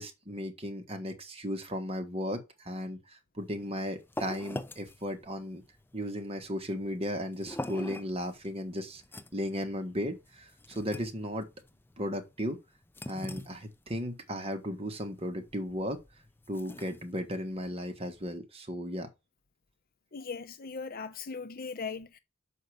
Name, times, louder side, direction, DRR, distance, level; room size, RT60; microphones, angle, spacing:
voice 1, 0.0-5.6 5.9-9.0 9.3-11.5 12.0-12.6 13.1-16.0 16.5-19.1, equal, 30° right, 1.6 m, -35 dB
sound 1, 3.4-18.4, left 1 dB, 10° left, 0.5 m, -45 dB
voice 2, 20.1-22.2, left 5 dB, 45° left, 0.7 m, -39 dB
6.5 x 5.3 x 6.4 m
head